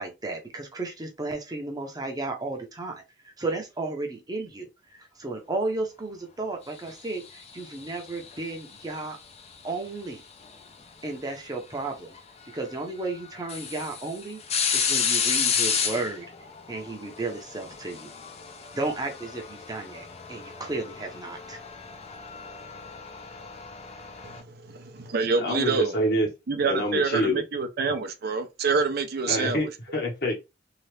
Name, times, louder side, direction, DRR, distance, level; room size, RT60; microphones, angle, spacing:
voice 1, 0.0-3.0 3.4-9.2 9.6-10.2 11.0-12.1 12.5-14.4 14.7-16.3 16.7-18.1 18.7-21.6, right 2 dB, 20° right, 0.7 m, -33 dB
sound 1, 7.1-8.6 10.4-10.6 12.1-12.2 12.7-12.8 13.2-24.4, left 6 dB, 35° left, 0.5 m, -31 dB
voice 2, 24.2-25.9 26.5-29.7, right 4 dB, 55° right, 0.5 m, -27 dB
voice 3, 25.4-26.3 26.6-27.4 29.3-30.3, left 1 dB, 55° left, 1.2 m, -26 dB
2.8 x 2.4 x 3.2 m
head